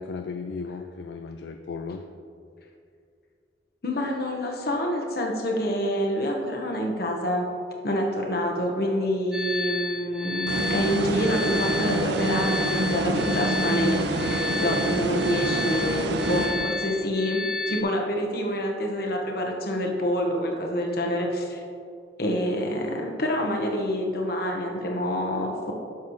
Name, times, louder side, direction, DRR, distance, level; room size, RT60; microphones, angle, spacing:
voice 1, 0.0-2.0, left 4 dB, 70° left, 6 dB, 0.4 m, -35 dB
voice 2, 3.8-7.5 7.8-21.6 22.2-25.7, equal, 55° left, 0 dB, 1.2 m, -27 dB
sound 1, 9.3-17.8, left 3 dB, 5° right, 0.4 m, -32 dB
sound 2, 10.5-17.1, right 2 dB, 70° right, 0.6 m, -27 dB
10.5 x 6.8 x 3.2 m, 2.4 s
head